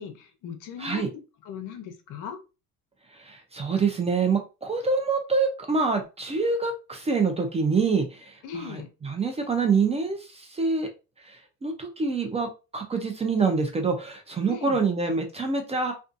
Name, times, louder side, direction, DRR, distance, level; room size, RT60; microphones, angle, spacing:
voice 1, 0.0-2.4 8.4-8.9 14.5-14.8, left 7 dB, 60° left, 6 dB, 0.7 m, -38 dB
voice 2, 3.2-10.9 11.3-12.5 12.7-15.9, right 4 dB, 20° right, 4 dB, 0.4 m, -26 dB
2.5 x 2.3 x 2.5 m, 0.30 s
cardioid pair, 120°, 35 cm